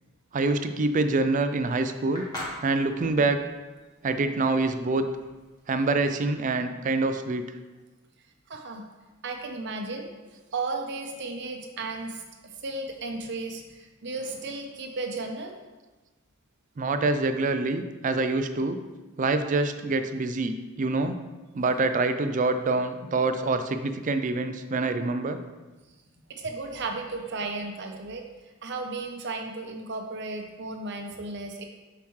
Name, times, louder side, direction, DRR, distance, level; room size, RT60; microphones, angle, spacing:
voice 1, 0.3-2.3 2.6-3.4 4.0-5.1 5.7-7.4 16.8-18.8 19.2-21.2 21.5-25.4, right 3 dB, 40° right, 9 dB, 0.4 m, -26 dB
sound 1, 0.6-5.6, left 1 dB, 20° left, 1.6 m, -41 dB
voice 2, 8.5-8.9 9.2-10.1 10.5-15.5 26.3-28.2 28.6-31.6, right 3 dB, 55° right, 3 dB, 0.8 m, -34 dB
6.9 x 5.8 x 3.2 m, 1.2 s
head